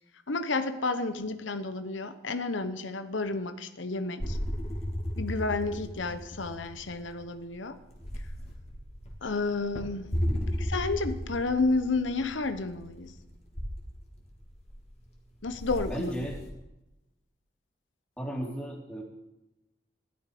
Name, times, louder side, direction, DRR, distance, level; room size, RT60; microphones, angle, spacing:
voice 1, 0.3-4.4 5.2-7.8 9.2-10.0 10.7-13.1 15.4-16.1, left 3 dB, 90° left, 10 dB, 1.0 m, -31 dB
sound 1, 4.2-16.5, equal, 35° left, 2.9 m, -35 dB
voice 2, 15.9-16.4 18.2-19.0, equal, 5° left, -2 dB, 3.1 m, -35 dB
16.5 x 12.5 x 5.1 m, 0.94 s
head